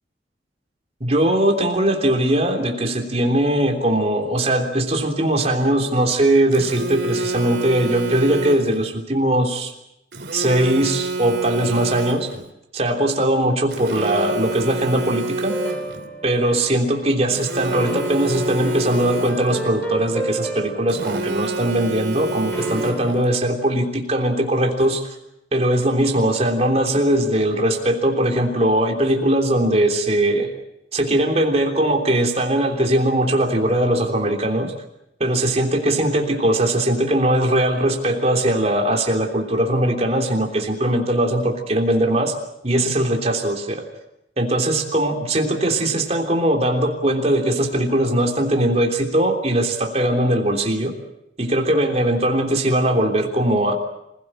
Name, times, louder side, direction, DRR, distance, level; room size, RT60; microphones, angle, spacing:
voice 1, 1.0-9.7 10.3-12.3 12.7-15.6 16.2-25.0 25.5-30.5 30.9-34.7 35.2-42.3 42.6-43.8 44.4-50.9 51.4-53.7, right 1 dB, 35° right, 2 dB, 3.3 m, -20 dB
Telephone, 6.5-8.9 10.1-12.5 13.7-16.1 17.3-19.7 20.9-23.3, right 2 dB, 70° right, 2.8 m, -28 dB
sound 1, 15.5-16.9 17.7-21.7 22.5-23.1, right 1 dB, 10° left, 3.4 m, -31 dB
26.5 x 16.5 x 8.9 m, 0.82 s
head